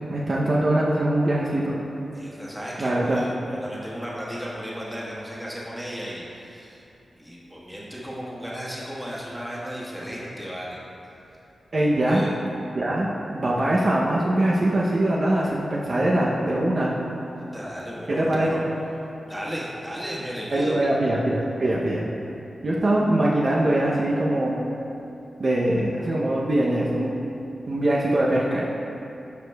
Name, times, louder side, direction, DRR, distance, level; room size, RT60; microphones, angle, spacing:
voice 1, 0.1-1.7 2.8-3.2 11.7-12.2 12.7-17.0 18.1-18.5 20.5-22.1 22.6-24.6 25.4-27.2 27.7-28.7, right 1 dB, 45° right, -5 dB, 0.6 m, -22 dB
voice 2, 2.1-6.8 7.2-10.8 12.1-12.3 17.5-18.6 19.3-20.8, equal, 5° right, -7 dB, 1.4 m, -35 dB
11.5 x 4.9 x 2.3 m, 2.8 s
wide cardioid pair, 95°, 0 cm